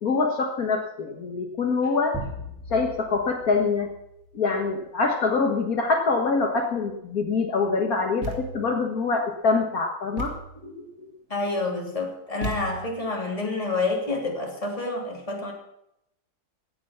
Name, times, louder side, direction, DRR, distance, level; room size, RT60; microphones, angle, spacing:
voice 1, 0.0-2.2 2.7-3.9 4.3-10.4 10.6-11.1, left 4 dB, 65° left, 3 dB, 2.0 m, -25 dB
sound 1, 2.1-5.0, left 1 dB, ahead, 4.4 m, -40 dB
Thump thud, 8.2-8.8 10.2-10.6 12.4-13.1, right 1 dB, 60° right, 2.2 m, -35 dB
voice 2, 11.3-15.5, left 3 dB, 20° left, 0 dB, 3.2 m, -28 dB
16.5 x 9.4 x 5.8 m, 0.81 s
omnidirectional pair, 1.7 m